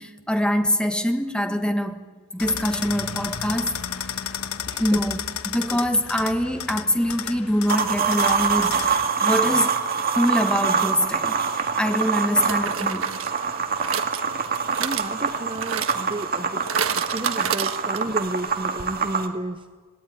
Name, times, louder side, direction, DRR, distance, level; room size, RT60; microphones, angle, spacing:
voice 1, 0.0-2.1 2.3-3.7 4.8-9.7 10.1-11.4 11.8-13.1, equal, 5° left, 1.3 m, -24 dB
sound 1, 2.4-9.0, left 8 dB, 90° left, 1.3 m, -32 dB
voice 2, 4.7-5.0 14.8-16.7 16.9-19.6, right 1 dB, 25° right, 0.7 m, -32 dB
sound 2, 7.7-19.3, right 5 dB, 45° right, 1.9 m, -25 dB
sound 3, 11.2-11.3 12.5-18.2 18.5-18.6 18.8-18.9, right 7 dB, 70° right, 1.3 m, -31 dB
26.5 x 18.5 x 9.7 m
head